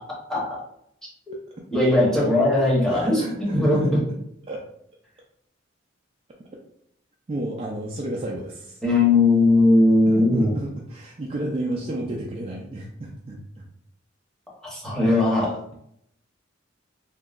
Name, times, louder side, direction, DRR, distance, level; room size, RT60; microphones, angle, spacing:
voice 1, 0.3-0.6 1.7-3.9 8.8-10.5 14.6-15.6, left 2 dB, 5° left, -6 dB, 0.9 m, -19 dB
voice 2, 2.9-4.2 4.5-4.6 7.3-8.8 10.1-13.4, right 1 dB, 30° right, -2 dB, 0.3 m, -32 dB
2.9 x 2.6 x 2.4 m, 0.73 s
head